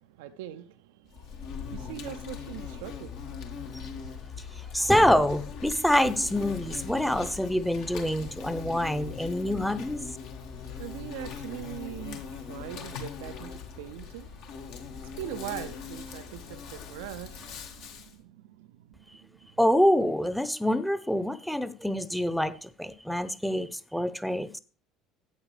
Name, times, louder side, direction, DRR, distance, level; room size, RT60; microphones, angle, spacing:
voice 1, 0.0-4.2 10.4-19.6, right 13 dB, 70° right, 0.5 m, -43 dB
Insect, 1.1-18.1, left 6 dB, 60° left, 1.8 m, -40 dB
voice 2, 4.5-10.1 19.6-24.6, equal, ahead, 0.9 m, -26 dB
13.0 x 8.7 x 3.3 m
figure-of-eight pair, 60°, 0 cm